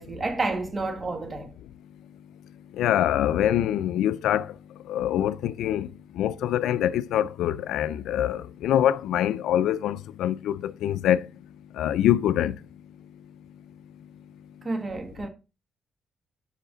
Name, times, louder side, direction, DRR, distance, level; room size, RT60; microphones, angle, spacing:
voice 1, 0.0-1.5 14.6-15.3, right 3 dB, 25° right, 1.7 m, -30 dB
voice 2, 2.8-4.5 4.9-5.9 6.2-11.2 11.8-12.5, left 11 dB, 85° left, 0.4 m, -24 dB
7.3 x 5.7 x 3.9 m
cardioid pair, 90°, 0 cm